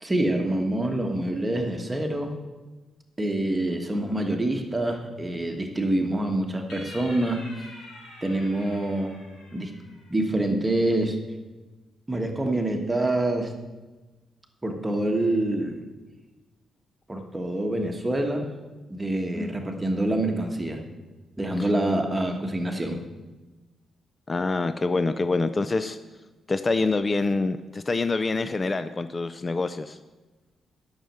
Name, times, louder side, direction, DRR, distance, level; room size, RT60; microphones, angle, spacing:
voice 1, 0.0-2.3 3.2-7.4 8.2-9.2 9.5-9.7 10.1-11.2 12.1-13.5 14.6-15.8 17.1-18.5 18.9-20.8 21.4-23.0, right 1 dB, 15° right, 3 dB, 1.4 m, -26 dB
sound 1, 6.7-10.2, left 1 dB, 85° left, 4.0 m, -46 dB
voice 2, 24.3-26.0 26.5-30.0, left 3 dB, 25° left, 11 dB, 0.4 m, -26 dB
9.0 x 6.5 x 8.7 m, 1.2 s
cardioid pair, 115°, 0 cm